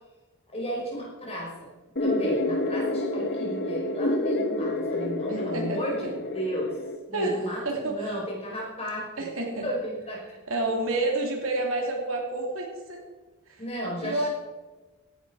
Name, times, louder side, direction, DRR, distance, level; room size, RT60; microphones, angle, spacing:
voice 1, 0.5-1.7 2.0-6.8 7.1-9.3 9.6-10.2 13.6-14.3, right 1 dB, 25° left, -3 dB, 5.1 m, -33 dB
sound 1, 2.0-7.0, left 2 dB, 45° left, 1.3 m, -28 dB
voice 2, 5.3-6.1 7.1-8.2 9.2-9.7 10.5-13.0 13.5-13.6 14.0-14.3, right 2 dB, 65° right, 1 dB, 2.9 m, -29 dB
16.5 x 11.0 x 4.9 m, 1.2 s
head